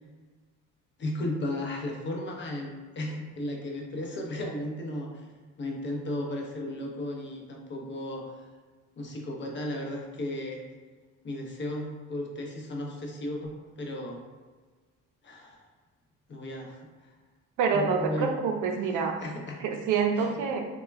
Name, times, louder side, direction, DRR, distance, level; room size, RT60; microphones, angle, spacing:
voice 1, 1.0-5.3 5.6-8.5 9.0-10.6 11.2-14.2 15.2-15.6 16.3-17.1 17.7-18.3 19.2-19.6 20.2-20.4, left 1 dB, 40° left, 0 dB, 0.6 m, -35 dB
voice 2, 17.6-19.2 19.6-20.6, right 5 dB, 85° right, 4 dB, 0.5 m, -27 dB
2.2 x 2.1 x 3.2 m, 1.4 s
cardioid pair, 90°, 30 cm